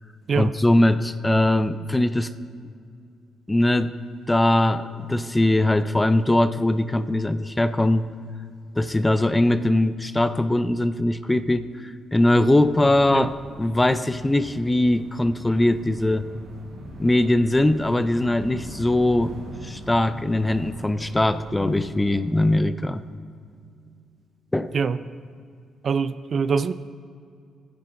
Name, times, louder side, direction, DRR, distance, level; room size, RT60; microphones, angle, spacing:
voice 1, 0.3-2.3 3.5-4.0 4.3-8.1 8.8-13.3 13.6-16.3 17.0-19.4 19.6-23.0 24.5-24.7, left 1 dB, 15° left, 12 dB, 0.4 m, -21 dB
sound 1, 12.4-22.2, right 1 dB, 80° right, 2.2 m, -41 dB
voice 2, 25.8-26.7, right 5 dB, 50° right, 14 dB, 0.3 m, -23 dB
15.5 x 9.9 x 2.6 m, 2.4 s
cardioid pair, 80°, 0 cm